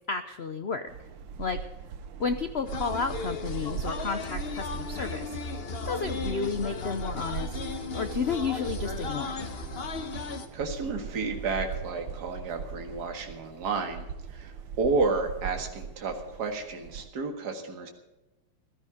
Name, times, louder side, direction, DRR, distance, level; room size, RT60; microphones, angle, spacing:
voice 1, 0.1-0.8 1.4-1.6 2.2-5.4 5.8-7.6 7.9-9.3, left 5 dB, 65° left, 9 dB, 0.6 m, -31 dB
sound 1, 0.9-17.1, right 7 dB, 75° right, 1.6 m, -40 dB
sound 2, 2.7-10.5, left 4 dB, 40° left, 1.0 m, -36 dB
voice 2, 10.5-14.0 14.3-17.9, right 4 dB, 55° right, 4 dB, 2.2 m, -31 dB
16.0 x 13.0 x 5.0 m, 1.0 s
omnidirectional pair, 2.1 m